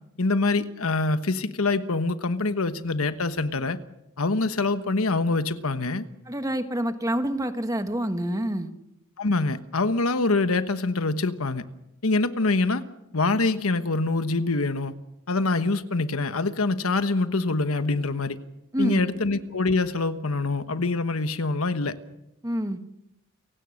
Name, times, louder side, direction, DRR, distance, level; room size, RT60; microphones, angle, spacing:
voice 1, 0.2-3.8 4.2-6.0 9.2-11.6 12.0-12.8 13.1-14.9 15.3-18.4 18.8-21.9, left 3 dB, 80° left, 11 dB, 1.2 m, -25 dB
voice 2, 6.3-8.7 18.7-19.0 22.4-22.8, equal, 15° right, 8 dB, 1.4 m, -27 dB
29.0 x 17.0 x 6.5 m, 0.84 s
head